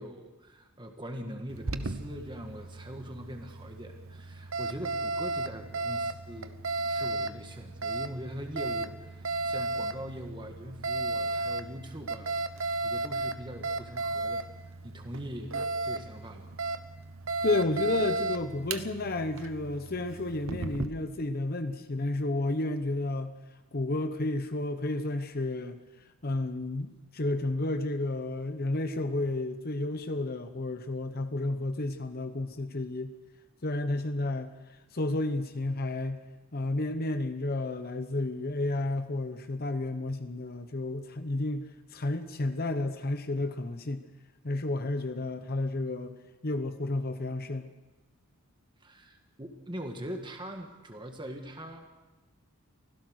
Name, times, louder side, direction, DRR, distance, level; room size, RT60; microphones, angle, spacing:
voice 1, 0.0-6.6 6.9-15.6 15.8-16.5 48.8-51.9, equal, 20° right, 4 dB, 1.6 m, -42 dB
Alarm, 1.5-20.9, right 3 dB, 65° right, 1.0 m, -35 dB
voice 2, 17.4-23.4 23.7-25.8 26.2-33.1 33.6-36.2 36.5-44.0 44.4-46.2 46.4-47.7, left 2 dB, 45° left, 9 dB, 0.9 m, -31 dB
24.5 x 16.0 x 6.5 m, 1.1 s
head